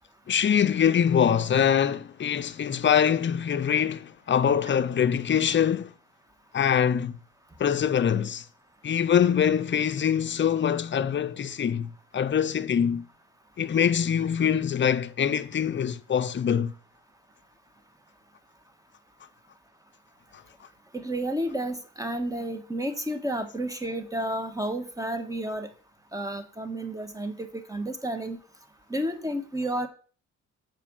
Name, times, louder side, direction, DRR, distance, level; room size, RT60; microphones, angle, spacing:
voice 1, 0.3-5.9 6.5-7.2 7.6-8.4 8.8-13.0 13.6-16.7, left 8 dB, 40° left, 0.7 m, -24 dB
voice 2, 20.9-25.7 26.1-28.4 28.9-29.9, right 1 dB, 10° right, 1.7 m, -31 dB
7.3 x 5.3 x 7.3 m
cardioid pair, 90°, 30 cm